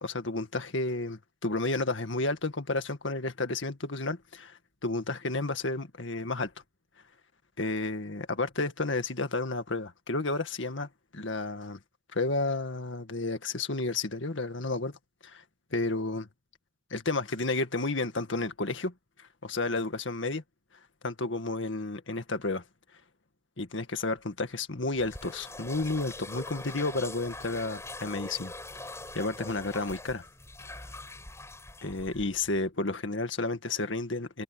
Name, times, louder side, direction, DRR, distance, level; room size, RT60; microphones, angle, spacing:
voice 1, 0.0-6.5 7.6-11.8 12.1-15.0 15.2-15.4 15.7-16.3 16.9-18.9 19.2-20.4 21.0-22.6 23.6-28.5 29.2-30.2 31.8-34.4, left 2 dB, 75° left, 1.9 m, -31 dB
sound 1, 24.9-32.6, left 2 dB, 15° left, 7.6 m, -43 dB
head